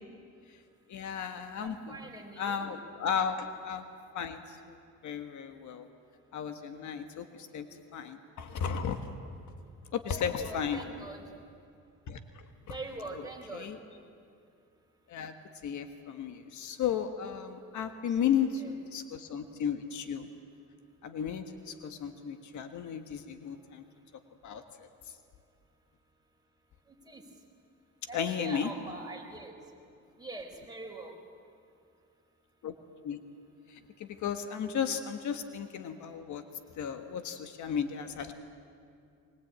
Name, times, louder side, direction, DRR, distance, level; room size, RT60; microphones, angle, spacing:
voice 1, 0.9-2.0 2.4-3.8 4.1-4.8 5.0-5.9 6.3-7.7 7.9-9.1 9.9-10.8 12.1-12.7 13.5-13.8 15.1-15.3 15.6-20.3 21.0-23.9 24.4-24.9 28.1-28.7 32.6-32.7 33.0-33.2 33.7-36.4 36.7-38.3, left 7 dB, 75° left, 8 dB, 1.5 m, -34 dB
voice 2, 1.6-2.7 10.1-11.2 12.7-13.7 18.1-18.7 26.9-27.2 28.1-29.6 30.2-31.1, right 2 dB, 15° right, 0 dB, 4.7 m, -44 dB
22.0 x 21.0 x 8.8 m, 2.4 s
cardioid pair, 90°, 30 cm